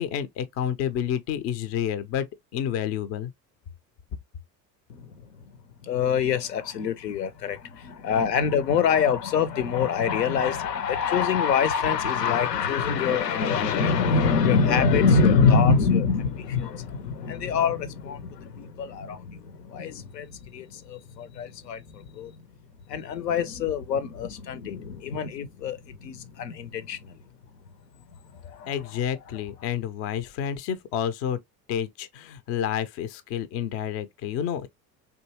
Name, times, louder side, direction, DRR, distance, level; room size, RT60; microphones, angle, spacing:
voice 1, 0.0-2.3 2.5-3.3 28.7-31.4 31.7-34.7, left 9 dB, 30° left, 0.4 m, -29 dB
voice 2, 5.8-22.3 22.9-27.2 28.4-28.7, left 6 dB, 75° left, 0.6 m, -25 dB
3.5 x 2.7 x 2.8 m
figure-of-eight pair, 65°, 49 cm